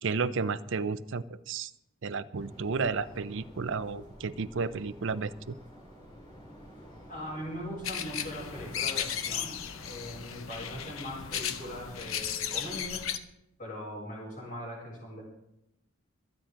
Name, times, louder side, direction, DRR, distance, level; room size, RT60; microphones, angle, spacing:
voice 1, 0.0-1.7 2.0-5.5, right 4 dB, 60° right, 12 dB, 0.6 m, -32 dB
sound 1, 2.3-12.2, equal, 20° left, 3.5 m, -51 dB
voice 2, 7.1-9.5 9.8-13.0 13.6-15.2, equal, 40° left, -5 dB, 7.2 m, -40 dB
sound 2, 7.8-13.2, left 8 dB, 70° left, 0.8 m, -35 dB
26.0 x 8.9 x 3.8 m, 0.84 s
head